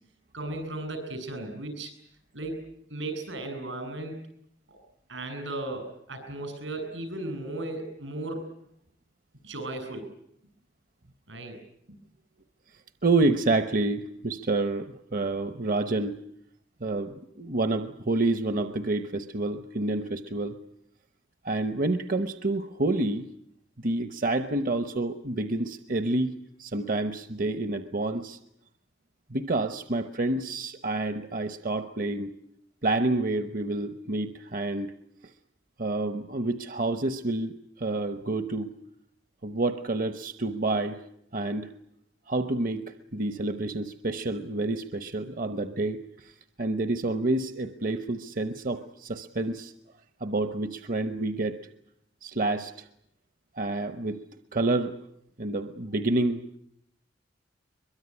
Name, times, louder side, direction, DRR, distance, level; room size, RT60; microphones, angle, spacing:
voice 1, 0.3-1.9 2.3-4.2 5.1-8.5 9.4-10.1 11.3-11.6 11.9-12.0, right 2 dB, 85° right, 7 dB, 7.6 m, -36 dB
voice 2, 13.0-16.2 16.8-20.6 21.4-23.3 23.8-28.4 29.3-32.3 32.8-34.9 35.8-37.5 37.8-38.8 39.4-41.0 41.3-41.7 42.3-46.3 46.6-49.7 50.2-51.6 52.2-52.9 53.6-54.2 54.5-55.0 55.4-56.6, right 2 dB, 45° right, 10 dB, 1.0 m, -28 dB
23.0 x 22.5 x 9.8 m, 0.74 s
head